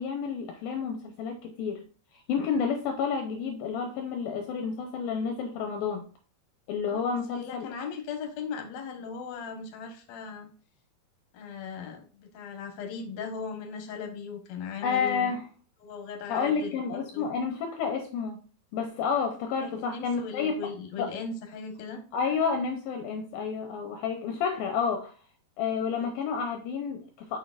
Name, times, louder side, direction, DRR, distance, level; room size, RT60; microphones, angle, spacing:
voice 1, 0.0-1.8 2.3-6.1 6.7-7.7 14.8-15.4 16.3-18.4 18.7-20.7 21.0-21.1 22.1-25.1 25.6-27.4, left 6 dB, 75° left, 3 dB, 2.3 m, -30 dB
voice 2, 6.9-10.5 11.3-15.3 15.8-16.8 17.1-17.3 19.5-22.0 26.0-26.1, left 5 dB, 60° left, 3 dB, 2.0 m, -38 dB
6.8 x 6.3 x 2.5 m, 0.39 s
omnidirectional pair, 4.8 m